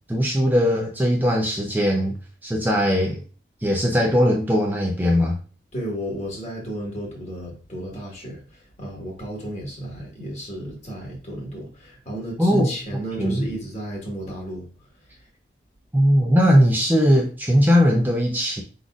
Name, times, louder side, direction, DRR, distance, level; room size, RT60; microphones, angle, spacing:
voice 1, 0.1-3.2 3.6-5.4 12.4-12.7 13.2-13.5 15.9-18.6, equal, 10° right, 0.5 m, -19 dB
voice 2, 5.7-14.7 15.1-15.2, right 1 dB, 40° left, 1.7 m, -33 dB
4.8 x 4.0 x 2.4 m
head